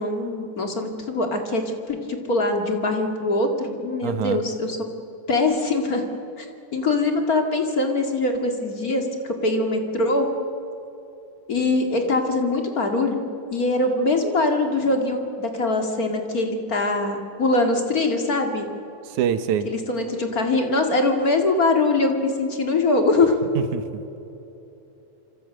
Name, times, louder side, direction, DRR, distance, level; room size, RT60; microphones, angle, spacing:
voice 1, 0.0-4.8 5.3-6.0 6.4-6.5 6.7-10.3 11.5-13.2 13.5-18.7 19.7-23.4, left 2 dB, 30° left, 4 dB, 2.1 m, -22 dB
voice 2, 4.0-4.4 19.0-19.7 23.6-24.0, right 8 dB, 70° right, 11 dB, 2.5 m, -25 dB
26.5 x 26.0 x 6.5 m, 3.0 s
omnidirectional pair, 3.7 m